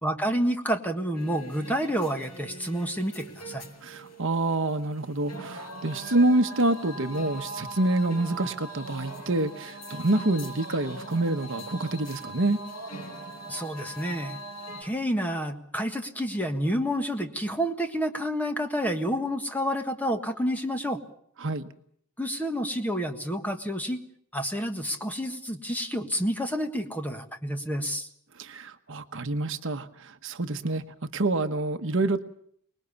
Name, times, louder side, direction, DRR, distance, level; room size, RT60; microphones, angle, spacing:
voice 1, 0.0-3.6 13.5-14.4 14.8-21.0 22.2-24.0 24.3-28.1, equal, 5° left, 5 dB, 1.5 m, -29 dB
sound 1, 1.1-14.8, right 1 dB, 90° left, 5.9 m, -41 dB
voice 2, 3.8-12.6 21.4-21.7 28.4-32.2, right 2 dB, 60° right, 8 dB, 1.1 m, -27 dB
24.5 x 20.5 x 7.0 m, 0.66 s
head